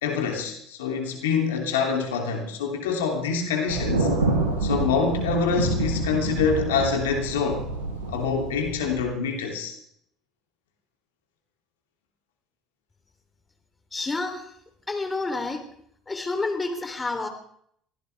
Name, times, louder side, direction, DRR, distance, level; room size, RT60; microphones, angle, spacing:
voice 1, 0.0-4.1 4.6-7.7 8.1-9.7, left 5 dB, 80° left, 2 dB, 3.0 m, -26 dB
Thunder, 3.7-9.0, right 2 dB, 85° right, 6.7 m, -27 dB
voice 2, 13.9-14.4 14.9-15.6 16.1-17.3, left 3 dB, 20° left, 6 dB, 3.4 m, -29 dB
23.0 x 16.5 x 3.5 m, 0.67 s
hypercardioid pair, 65°, 0 cm